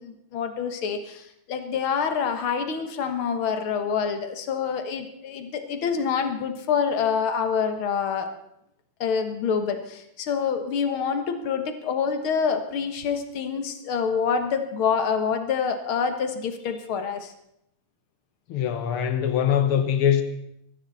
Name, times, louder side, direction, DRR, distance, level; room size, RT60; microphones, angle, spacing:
voice 1, 0.0-8.3 9.0-17.3, left 6 dB, 55° left, 1.5 m, -26 dB
voice 2, 18.5-20.2, left 9 dB, 90° left, 1.1 m, -22 dB
22.0 x 14.5 x 4.1 m
omnidirectional pair, 4.0 m